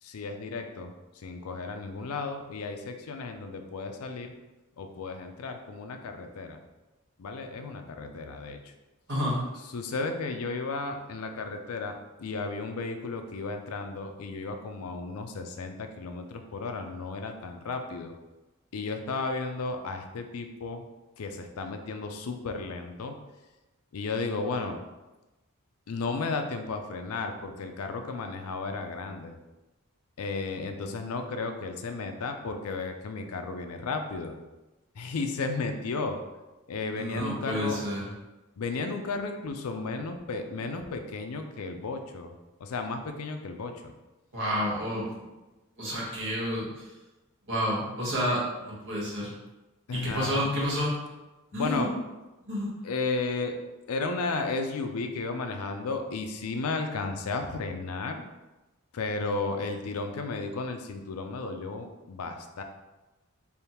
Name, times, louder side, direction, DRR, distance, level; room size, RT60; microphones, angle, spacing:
voice 1, 0.0-4.3 4.8-6.6 7.2-8.7 9.7-18.1 18.7-20.9 21.2-23.2 23.9-24.8 25.9-29.4 30.2-34.3 34.9-36.2 36.7-37.8 38.6-42.3 42.6-43.9 49.9-50.5 51.5-51.9 52.8-53.6 53.9-58.3 58.9-62.6, left 3 dB, 80° left, 6 dB, 0.4 m, -34 dB
voice 2, 9.1-9.4 37.0-38.0 44.3-45.2 45.8-46.9 47.5-49.3 50.0-50.9 51.5-51.9 52.4-52.7, equal, 60° right, -5 dB, 1.3 m, -30 dB
3.5 x 2.3 x 4.3 m, 1.1 s
head